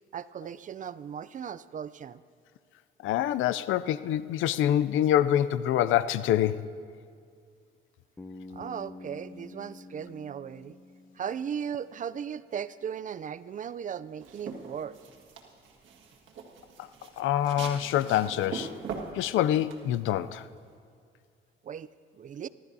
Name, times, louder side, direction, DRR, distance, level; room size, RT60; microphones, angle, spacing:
voice 1, 0.1-2.2 8.5-10.8 11.2-15.0 21.6-22.5, right 8 dB, 40° right, 16 dB, 0.4 m, -37 dB
voice 2, 3.0-6.7 16.8-16.9 17.2-18.7 19.1-20.5, left 11 dB, 80° left, 16 dB, 0.4 m, -26 dB
Bass guitar, 8.2-12.2, left 2 dB, 10° left, 0.5 m, -48 dB
sound 1, 14.2-20.7, right 5 dB, 70° right, 1.8 m, -42 dB
23.5 x 12.5 x 2.7 m, 2.2 s
cardioid pair, 90°, 20 cm